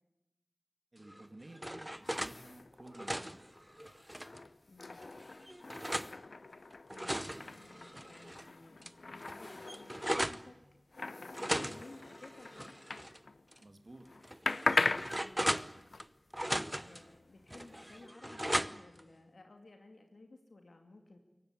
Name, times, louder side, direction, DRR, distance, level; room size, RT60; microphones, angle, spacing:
voice 1, 0.9-3.4 13.6-14.1, right 1 dB, 45° right, 7 dB, 2.0 m, -53 dB
sound 1, 1.1-2.4 2.8-4.4 5.0-6.1 6.7-8.5 8.8-8.9 9.2-10.5 11.3-13.2 13.5-13.6 14.2-16.1 16.3-17.0 17.5-19.0, equal, 10° right, 0.7 m, -38 dB
sound 2, 1.9-13.7 13.9-18.1, left 3 dB, 65° left, 0.8 m, -40 dB
voice 2, 4.7-5.0 6.9-10.6 11.2-12.8 15.1-15.5 16.4-21.2, left 2 dB, 85° left, 4 dB, 2.3 m, -56 dB
22.5 x 18.0 x 9.8 m, 1.1 s
wide cardioid pair, 65°, 0 cm